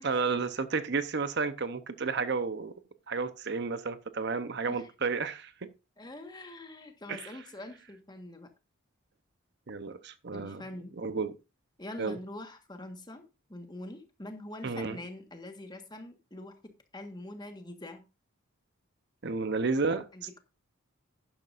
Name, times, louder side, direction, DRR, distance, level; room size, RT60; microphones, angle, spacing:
voice 1, 0.0-2.7 3.1-5.7 7.1-7.3 9.7-10.6 11.0-11.3 12.0-12.2 14.6-15.0 19.2-20.1, right 4 dB, 55° right, 0.8 m, -31 dB
voice 2, 6.0-8.5 10.3-10.9 11.8-13.2 13.5-16.6 16.9-18.0 20.1-20.4, left 1 dB, 20° left, 1.4 m, -44 dB
12.0 x 11.0 x 2.5 m
head